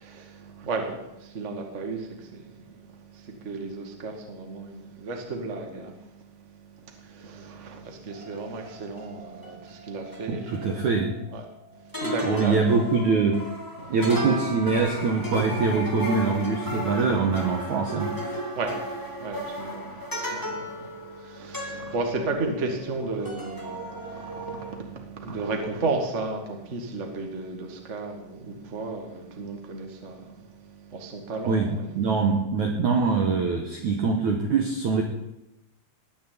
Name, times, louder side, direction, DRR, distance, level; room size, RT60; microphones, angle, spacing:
voice 1, 0.0-10.9 11.3-11.4 11.7-12.8 13.8-14.1 15.1-15.2 16.0-16.1 18.5-32.1, right 3 dB, 45° right, 2 dB, 0.8 m, -34 dB
sound 1, 8.1-11.6 11.9-23.0 23.2-24.7, equal, 25° left, 0.4 m, -34 dB
voice 2, 10.3-11.1 12.2-13.4 13.9-18.4 31.4-35.0, right 4 dB, 70° right, 2 dB, 1.8 m, -24 dB
19.5 x 6.6 x 8.9 m, 0.89 s
omnidirectional pair, 5.4 m